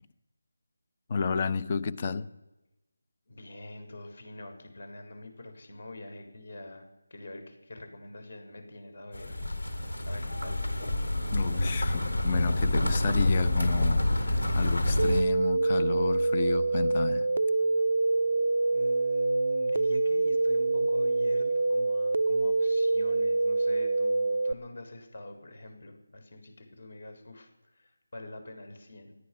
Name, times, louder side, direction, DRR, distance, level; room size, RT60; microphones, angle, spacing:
voice 1, 1.1-2.3 11.3-17.3, left 5 dB, 30° left, 0.7 m, -31 dB
voice 2, 3.3-10.7 18.7-29.2, left 2 dB, 55° left, 4.0 m, -45 dB
sound 1, 9.1-15.2, left 1 dB, 80° left, 3.2 m, -27 dB
sound 2, 15.0-24.5, right 3 dB, 60° right, 0.4 m, -26 dB
17.5 x 11.5 x 5.8 m
figure-of-eight pair, 165°, 0 cm